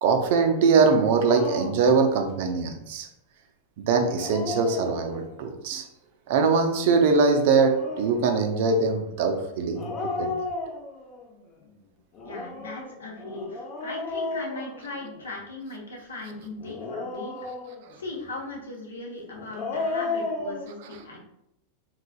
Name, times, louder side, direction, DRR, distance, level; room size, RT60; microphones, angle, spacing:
voice 1, 0.0-3.1 3.8-5.9 6.3-9.8 10.2-10.4, right 4 dB, 50° right, 5 dB, 0.5 m, -22 dB
Dog, 1.3-1.9 4.0-5.4 7.5-8.2 9.7-11.2 12.1-15.3 16.6-18.0 19.3-20.7, left 3 dB, 30° left, 0.7 m, -33 dB
voice 2, 12.2-17.3 18.0-21.2, left 2 dB, 70° left, -2 dB, 0.9 m, -38 dB
3.6 x 3.2 x 2.3 m, 0.81 s
figure-of-eight pair, 90°, 0 cm